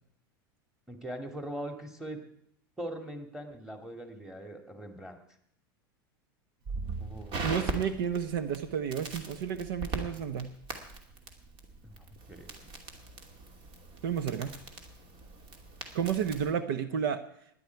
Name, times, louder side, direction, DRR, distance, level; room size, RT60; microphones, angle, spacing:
voice 1, 0.9-2.2 2.8-5.2 6.8-7.4 11.8-12.5, right 1 dB, 5° right, 5 dB, 2.4 m, -41 dB
Crackle, 6.6-16.5, right 3 dB, 45° right, 2.6 m, -40 dB
voice 2, 7.4-10.5 14.0-14.5 15.9-17.2, right 8 dB, 75° right, 11 dB, 1.0 m, -31 dB
16.5 x 11.0 x 4.7 m, 0.68 s
hypercardioid pair, 105°, 12 cm